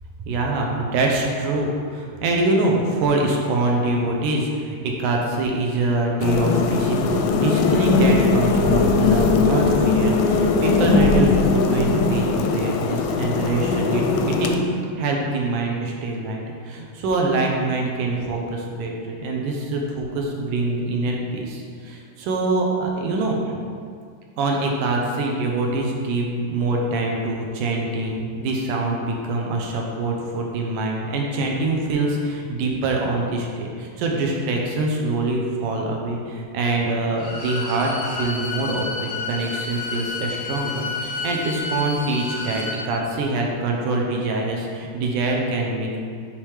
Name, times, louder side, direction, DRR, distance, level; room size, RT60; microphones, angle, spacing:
voice 1, 0.2-14.0 14.4-14.6 15.0-23.4 24.4-46.0, right 2 dB, 75° right, 0 dB, 2.4 m, -24 dB
sound 1, 6.2-14.6, left 4 dB, 85° left, 2.2 m, -19 dB
Bowed string instrument, 37.1-42.8, left 3 dB, 60° left, 0.8 m, -30 dB
8.6 x 3.5 x 4.9 m, 2.2 s
omnidirectional pair, 3.8 m